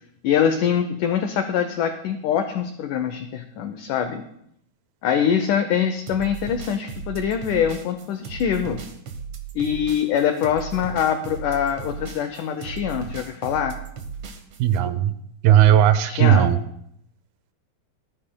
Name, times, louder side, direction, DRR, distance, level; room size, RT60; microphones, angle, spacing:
voice 1, 0.2-4.2 5.0-8.8 9.6-13.8 16.0-16.5, left 8 dB, 80° left, 8 dB, 1.9 m, -24 dB
sound 1, 6.1-14.8, right 6 dB, 60° right, 1.7 m, -36 dB
voice 2, 14.6-15.1 15.4-16.6, right 10 dB, 85° right, 11 dB, 2.7 m, -16 dB
20.0 x 13.5 x 2.3 m, 0.73 s
omnidirectional pair, 4.3 m